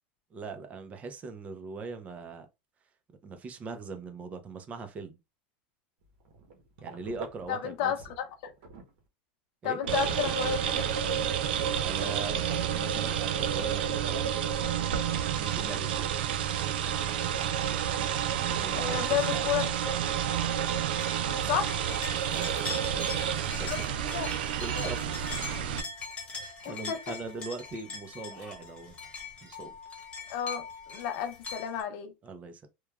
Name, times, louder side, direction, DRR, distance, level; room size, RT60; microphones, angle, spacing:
voice 1, 0.3-2.5 3.2-5.2 6.8-7.9 9.6-9.8 11.8-14.3 15.4-16.1 18.3-19.5 22.3-23.3 23.5-23.9 24.6-25.0 25.5-25.8 26.4-28.9 29.4-29.7 32.2-32.7, right 4 dB, 25° right, 0.5 m, -41 dB
sound 1, 6.0-9.0 9.8-13.2 13.6-14.1, right 3 dB, 65° right, 0.8 m, -47 dB
voice 2, 7.5-8.5 9.6-11.3 18.7-19.7 21.5-21.7 23.7-23.8 24.1-24.3 24.8-24.9 26.6-27.0 30.3-32.1, left 9 dB, 65° left, 0.6 m, -32 dB
sound 2, 9.9-25.8, right 9 dB, 90° right, 0.4 m, -30 dB
sound 3, 21.0-31.8, left 4 dB, 20° left, 1.1 m, -42 dB
2.9 x 2.2 x 2.3 m
supercardioid pair, 125°, 5 cm